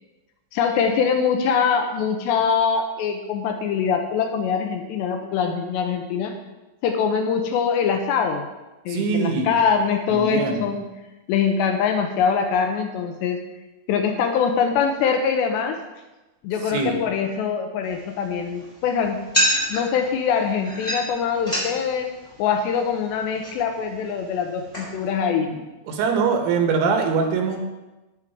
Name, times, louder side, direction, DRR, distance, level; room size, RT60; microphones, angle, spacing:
voice 1, 0.5-6.3 6.8-8.5 8.9-10.9 11.3-13.4 13.9-15.8 16.4-19.2 19.7-22.1 22.4-25.5, left 6 dB, 75° left, 5 dB, 2.8 m, -23 dB
voice 2, 8.9-9.6 10.1-10.6 16.7-17.0 25.5-25.6 25.9-27.6, right 5 dB, 80° right, 3 dB, 3.6 m, -23 dB
sound 1, 17.8-25.1, equal, 10° left, 3.3 m, -30 dB
10.5 x 9.7 x 4.7 m, 1.1 s
omnidirectional pair, 5.5 m